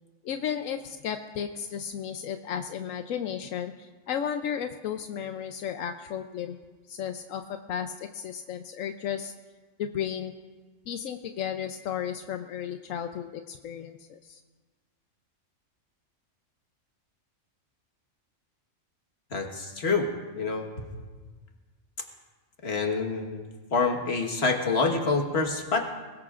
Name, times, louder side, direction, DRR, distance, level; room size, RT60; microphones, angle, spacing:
voice 1, 0.2-6.6 6.9-9.3 9.8-10.3 10.9-14.4, left 8 dB, 85° left, 7 dB, 1.0 m, -34 dB
voice 2, 19.3-20.1 20.4-20.7 22.6-23.4 23.7-25.9, left 4 dB, 55° left, 3 dB, 1.7 m, -27 dB
22.5 x 19.5 x 2.5 m, 1.4 s
omnidirectional pair, 1.3 m